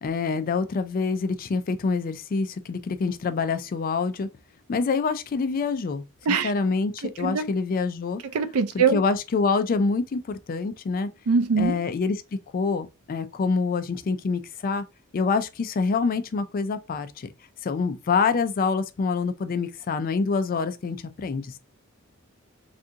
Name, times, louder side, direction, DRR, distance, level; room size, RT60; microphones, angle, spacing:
voice 1, 0.0-4.3 4.7-6.0 6.4-8.2 8.9-11.1 11.6-12.2 12.5-14.8 15.1-17.3 17.6-21.6, left 4 dB, 40° left, 0.3 m, -26 dB
voice 2, 8.3-9.0 11.3-11.8, right 5 dB, 80° right, 0.5 m, -22 dB
3.4 x 2.5 x 2.7 m
head